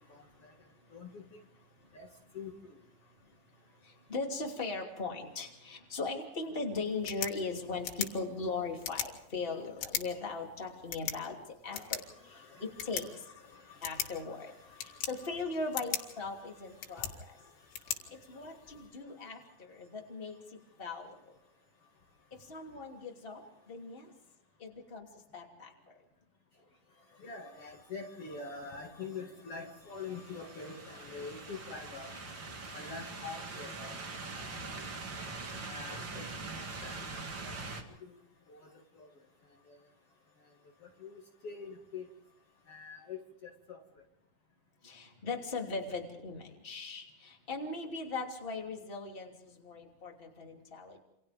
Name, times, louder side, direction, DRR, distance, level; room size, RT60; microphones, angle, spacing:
voice 1, 0.1-0.5 0.9-1.2 1.9-2.1 2.3-2.5 12.2-15.3 16.9-17.1 27.2-32.3 32.7-34.0 34.3-35.0 35.6-37.0 37.4-37.6 38.5-38.7 38.9-39.1 41.0-42.0 42.7-43.8, left 4 dB, 85° left, 0 dB, 1.2 m, -46 dB
voice 2, 3.8-13.2 13.8-17.4 18.1-21.4 22.3-24.1 24.6-25.9 44.8-51.0, left 3 dB, 20° left, 0 dB, 1.6 m, -39 dB
sound 1, 6.9-18.9, left 10 dB, 70° left, 4.0 m, -42 dB
sound 2, 29.9-37.8, right 3 dB, 75° right, 1.0 m, -43 dB
28.5 x 27.0 x 3.5 m, 0.83 s
omnidirectional pair, 6.0 m